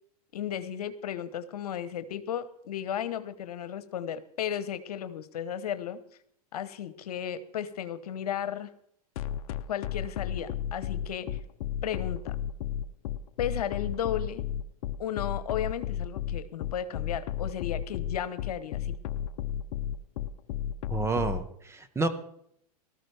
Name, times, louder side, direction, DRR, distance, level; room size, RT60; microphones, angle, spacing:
voice 1, 0.3-6.0 6.5-8.7 9.7-11.4 11.8-12.4 13.4-14.4 15.0-19.0, left 9 dB, 80° left, 13 dB, 1.1 m, -34 dB
sound 1, 9.2-21.4, left 11 dB, 60° left, 0.7 m, -33 dB
voice 2, 20.9-22.1, right 3 dB, 15° right, 9 dB, 1.2 m, -29 dB
18.0 x 13.5 x 3.5 m, 0.70 s
hypercardioid pair, 110°, 20 cm